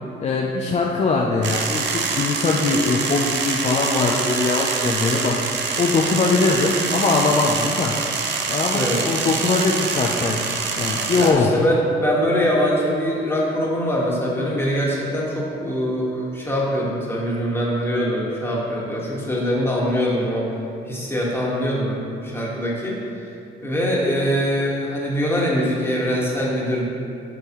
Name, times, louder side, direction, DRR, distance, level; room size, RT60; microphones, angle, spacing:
voice 1, 0.2-5.4 5.8-7.9 8.5-10.4 10.7-11.5, left 3 dB, 35° left, -1 dB, 0.5 m, -21 dB
sound 1, 1.4-11.3, right 5 dB, 65° right, 0.7 m, -25 dB
voice 2, 11.1-20.5 20.9-26.9, equal, 10° left, -5 dB, 1.6 m, -23 dB
8.0 x 5.3 x 3.0 m, 2.5 s
cardioid pair, 90°, 20 cm